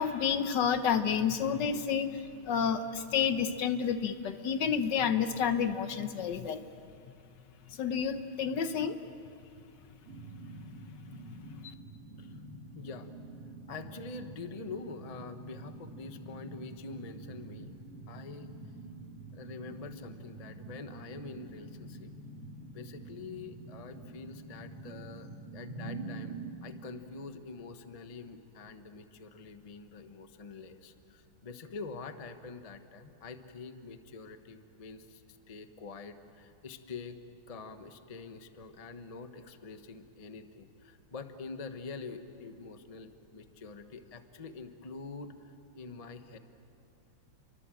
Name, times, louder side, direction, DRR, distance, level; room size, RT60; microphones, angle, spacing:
voice 1, 0.0-6.6 7.7-9.0 11.6-11.7, left 7 dB, 65° left, 10 dB, 1.4 m, -30 dB
sound 1, 10.0-26.5, right 2 dB, 30° right, 2.5 m, -46 dB
voice 2, 12.7-13.1 13.7-17.8 18.1-18.6 19.3-22.1 22.7-37.2 37.5-46.4, left 4 dB, 30° left, 8 dB, 0.7 m, -45 dB
29.5 x 23.0 x 7.6 m, 2.6 s
omnidirectional pair, 2.2 m